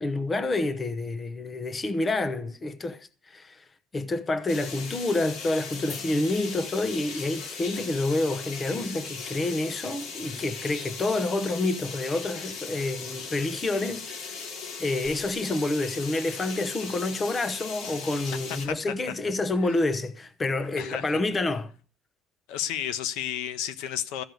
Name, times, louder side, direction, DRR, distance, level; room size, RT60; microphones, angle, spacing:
voice 1, 0.0-3.6 3.9-14.4 14.8-21.7, left 2 dB, 20° left, 0.9 m, -28 dB
sound 1, 4.5-18.7, left 5 dB, 60° left, 4.0 m, -38 dB
voice 2, 20.8-21.2 22.5-24.2, left 10 dB, 85° left, 1.1 m, -32 dB
14.5 x 5.3 x 9.2 m
cardioid pair, 150°, 0 cm